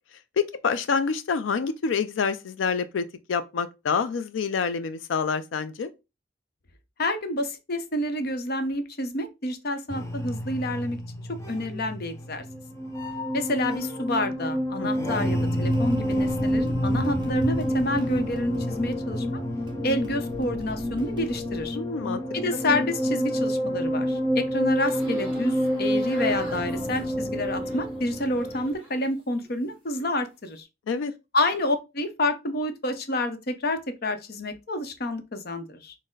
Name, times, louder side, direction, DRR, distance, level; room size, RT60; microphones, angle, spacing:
voice 1, 0.4-5.9 14.8-15.1 21.7-22.2 30.9-31.1, left 5 dB, 90° left, 0.4 m, -27 dB
voice 2, 7.0-11.0 11.3-12.4 13.3-19.4 19.8-21.8 22.3-30.7 31.3-35.9, left 1 dB, 55° left, 0.8 m, -28 dB
sound 1, 9.9-28.7, equal, 15° left, 0.6 m, -28 dB
sound 2, 15.6-21.7, right 2 dB, 25° right, 0.8 m, -42 dB
sound 3, 24.7-29.1 29.4-30.2, equal, 10° right, 1.8 m, -45 dB
6.3 x 2.1 x 3.8 m
head